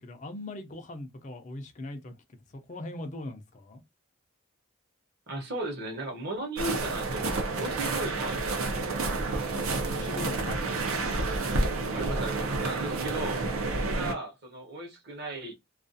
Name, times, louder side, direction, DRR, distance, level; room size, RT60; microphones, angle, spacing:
voice 1, 0.0-2.2 2.5-3.8 9.9-10.8, left 2 dB, 35° left, 0.4 m, -40 dB
voice 2, 5.3-9.2 11.9-13.4 13.8-15.5, right 2 dB, 50° right, 0.9 m, -36 dB
sound 1, 6.6-14.1, right 3 dB, 80° right, 0.6 m, -30 dB
2.4 x 2.3 x 2.6 m
head